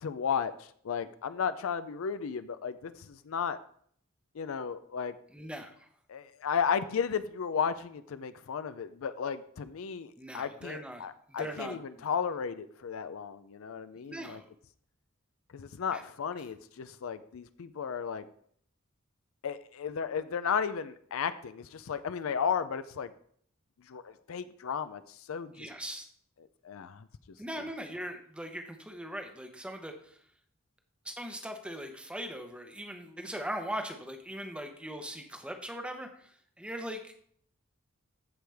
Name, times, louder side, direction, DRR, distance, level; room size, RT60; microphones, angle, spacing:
voice 1, 0.0-3.6 4.3-5.2 6.1-14.4 15.5-18.3 19.4-23.1 23.9-25.6 26.6-27.1, left 7 dB, 70° left, 13 dB, 0.4 m, -34 dB
voice 2, 5.3-5.9 10.2-11.1 11.4-12.0 14.1-14.4 15.9-16.0 25.5-26.1 27.4-30.2 31.0-36.3 36.6-37.2, equal, 5° right, 5 dB, 0.8 m, -40 dB
14.0 x 4.9 x 3.4 m, 0.62 s
head